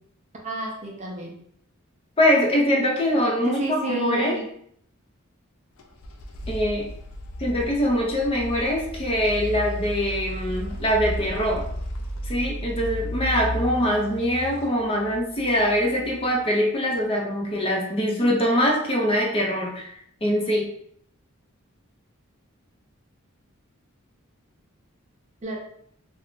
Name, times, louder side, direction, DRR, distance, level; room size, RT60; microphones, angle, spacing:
voice 1, 0.4-1.3 3.4-4.5 25.4-25.6, right 2 dB, 35° right, -1 dB, 0.5 m, -30 dB
voice 2, 2.2-4.4 6.5-6.9 7.4-11.7 12.2-19.9 20.2-20.7, equal, 25° left, 0 dB, 0.6 m, -23 dB
sound 1, 5.8-16.6, left 1 dB, 80° left, 0.5 m, -34 dB
2.5 x 2.2 x 3.6 m, 0.67 s
head